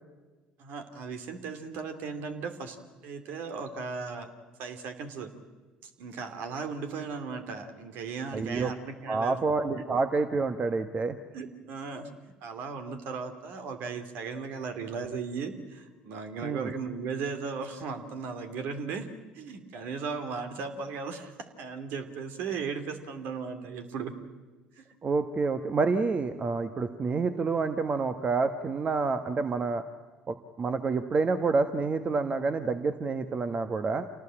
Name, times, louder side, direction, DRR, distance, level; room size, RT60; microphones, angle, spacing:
voice 1, 0.6-2.8 3.0-4.3 4.6-5.3 5.8-9.4 9.8-9.9 11.3-19.1 19.3-21.3 21.6-24.1 24.8-24.9, right 5 dB, 70° right, 8 dB, 2.7 m, -36 dB
voice 2, 8.3-8.7 9.1-11.2 16.4-16.7 25.0-29.8 30.3-34.1, right 4 dB, 35° right, 9 dB, 1.4 m, -28 dB
27.5 x 18.5 x 8.9 m, 1.3 s
hypercardioid pair, 70°, 3 cm